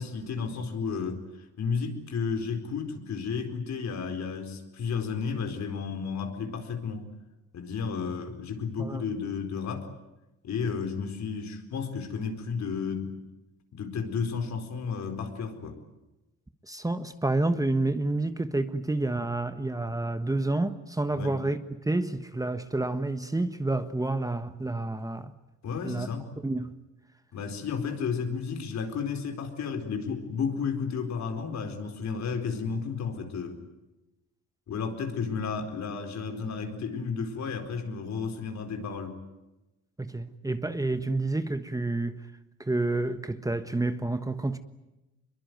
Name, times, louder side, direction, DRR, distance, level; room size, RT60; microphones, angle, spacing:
voice 1, 0.0-7.0 7.5-9.9 10.4-13.1 13.7-15.8 21.1-21.4 25.6-26.3 27.3-33.6 34.7-39.2, left 5 dB, 65° left, 4.5 m, -32 dB
voice 2, 16.7-21.6 21.8-25.3 25.8-26.1 26.4-26.7 40.0-42.2 42.6-44.6, right 2 dB, 10° right, 1.3 m, -29 dB
24.0 x 22.5 x 9.4 m
cardioid pair, 90°, 30 cm